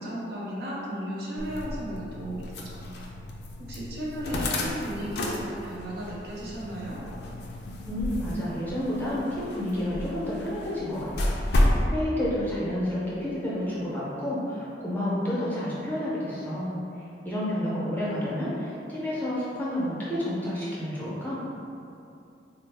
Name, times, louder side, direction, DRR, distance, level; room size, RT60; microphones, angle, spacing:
voice 1, 0.0-2.8 3.6-7.0, equal, 55° right, -6 dB, 0.7 m, -35 dB
sound 1, 1.4-11.8, left 1 dB, 60° left, 0.4 m, -31 dB
voice 2, 7.9-11.3 11.6-21.4, left 1 dB, 10° left, -9 dB, 0.6 m, -30 dB
3.7 x 2.0 x 3.3 m, 2.6 s
head